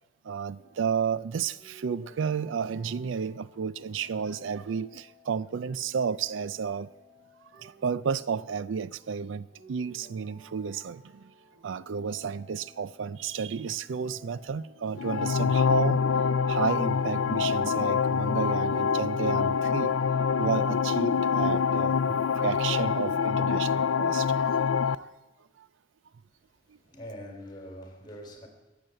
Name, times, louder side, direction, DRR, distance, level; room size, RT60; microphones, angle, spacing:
voice 1, 0.2-6.9 7.5-11.2 11.6-16.0 16.5-20.1 20.3-25.1 25.6-25.7, right 6 dB, 70° right, 0.4 m, -32 dB
sound 1, 0.5-20.1, equal, 40° right, 6.5 m, -55 dB
sound 2, 14.9-24.9, left 6 dB, 80° left, 0.4 m, -25 dB
voice 2, 26.3-28.5, equal, 25° left, 3.6 m, -44 dB
21.0 x 8.1 x 7.7 m
head